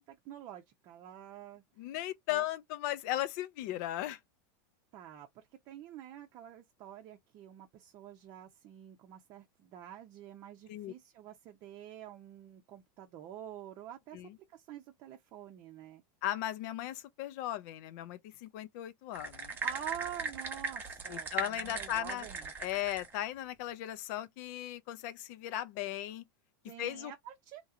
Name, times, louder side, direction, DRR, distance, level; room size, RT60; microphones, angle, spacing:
voice 1, 0.0-1.6 2.3-2.4 4.9-14.2 14.5-16.0 19.4-22.5 26.6-27.6, right 11 dB, 35° right, 0.6 m, -47 dB
voice 2, 1.8-4.2 10.7-10.9 14.1-14.4 16.2-19.5 21.1-22.3 22.6-26.3 26.8-27.1, left 13 dB, 50° left, 0.5 m, -37 dB
sound 1, 19.1-23.2, right 4 dB, 15° right, 1.1 m, -39 dB
2.9 x 2.8 x 2.4 m
supercardioid pair, 155°, 12 cm